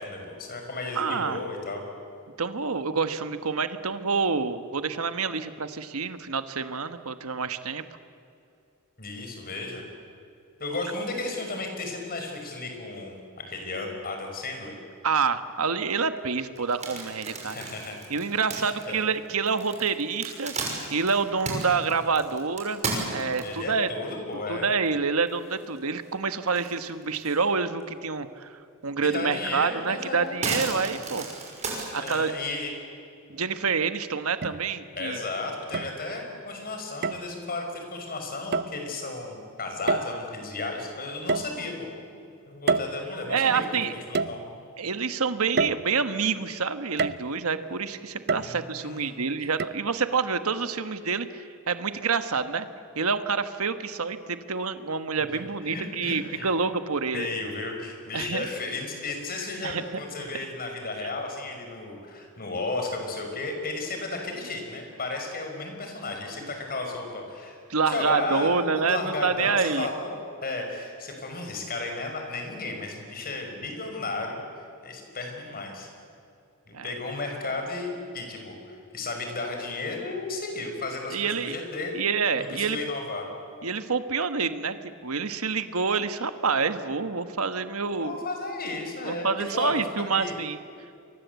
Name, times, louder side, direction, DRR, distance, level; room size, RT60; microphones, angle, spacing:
voice 1, 0.0-1.8 9.0-9.8 10.6-14.7 17.4-18.0 18.5-19.0 23.4-24.7 29.0-30.4 32.0-32.7 34.9-41.9 42.5-44.4 48.3-49.4 55.7-56.5 57.1-67.6 67.8-74.4 74.8-75.9 76.7-82.0 82.4-83.3 88.0-89.8 90.1-90.4, left 3 dB, 45° left, 3 dB, 5.6 m, -34 dB
voice 2, 0.9-1.4 2.4-7.8 15.0-17.7 18.1-20.5 20.9-22.8 23.1-23.9 24.5-31.3 31.9-32.3 33.3-35.2 43.3-43.9 44.8-52.7 52.9-57.3 58.1-58.5 59.6-59.8 61.0-61.1 67.7-69.9 76.7-76.9 81.1-81.6 81.9-82.8 83.6-88.2 89.0-90.6, right 5 dB, 75° right, 10 dB, 1.3 m, -27 dB
sound 1, 16.6-23.7 24.3-24.4 24.9-25.0 25.3-26.1 26.5-27.4 27.8-27.9 29.3-29.4 29.8-32.3, right 3 dB, 35° right, 6.0 m, -34 dB
sound 2, 33.3-33.4 34.4-35.0 35.7-36.4 37.0-37.4 38.5-38.8 39.9-40.4 41.3-42.0 42.7-43.5 44.1-44.8 45.6-46.3 47.0-47.5 48.3-48.9 49.6-49.7, right 4 dB, 50° right, 0.7 m, -29 dB
29.0 x 23.5 x 8.2 m, 2.5 s
head